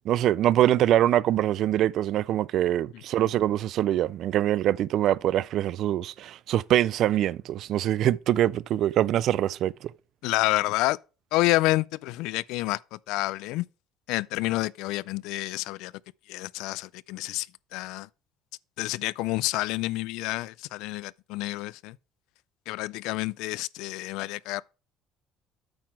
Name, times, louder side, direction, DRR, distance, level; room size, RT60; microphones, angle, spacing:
voice 1, 0.1-9.9, right 12 dB, 55° right, 0.3 m, -24 dB
voice 2, 10.2-11.0 11.3-13.6 14.1-15.9 16.3-18.1 18.8-22.0 22.7-24.6, left 19 dB, 80° left, 0.3 m, -29 dB
8.7 x 5.9 x 4.6 m
cardioid pair, 140°, 0 cm